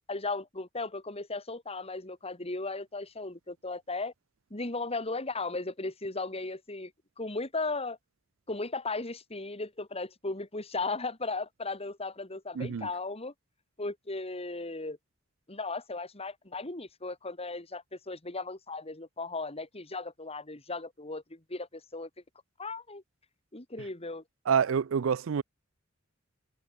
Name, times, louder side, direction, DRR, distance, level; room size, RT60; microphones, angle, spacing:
voice 1, 0.1-4.1 4.5-6.9 7.2-8.0 8.5-13.3 13.8-15.0 15.5-22.1 22.6-23.0 23.5-24.2, left 3 dB, 30° left, 3.0 m, -36 dB
voice 2, 12.6-12.9 24.5-25.4, right 7 dB, 75° right, 0.4 m, -27 dB
head